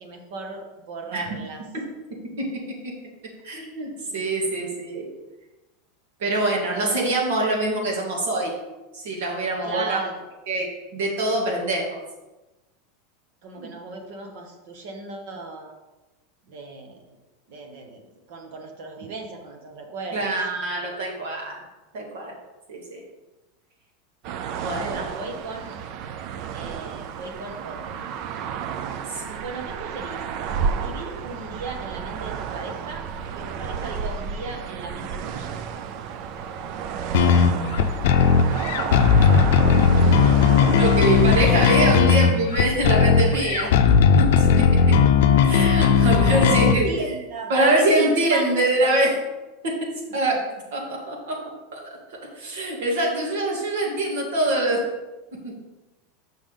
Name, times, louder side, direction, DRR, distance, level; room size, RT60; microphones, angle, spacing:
voice 1, 0.0-1.6 6.7-7.0 9.6-10.2 13.4-15.7 16.5-17.0 17.5-20.4 24.7-25.8 26.5-28.1 29.4-30.2 30.7-35.6 40.7-41.2 46.3-48.5 48.8-49.0, right 3 dB, 60° right, 3 dB, 1.2 m, -36 dB
voice 2, 3.4-5.1 6.2-8.6 8.9-10.0 10.5-10.7 10.9-12.0 13.6-13.7 20.1-21.6 21.9-22.3 22.7-23.0 24.6-25.0 29.1-29.4 40.6-44.6 45.4-46.9 47.5-49.1 49.6-50.4 50.7-51.4 51.7-51.8 52.3-54.8 55.4-55.5, right 2 dB, 80° right, -2 dB, 2.4 m, -24 dB
sound 1, 24.2-42.0, right 7 dB, 40° right, 0.4 m, -31 dB
sound 2, 37.1-46.8, left 6 dB, 70° left, 0.5 m, -17 dB
6.9 x 6.1 x 3.8 m, 1.1 s
supercardioid pair, 165°, 0 cm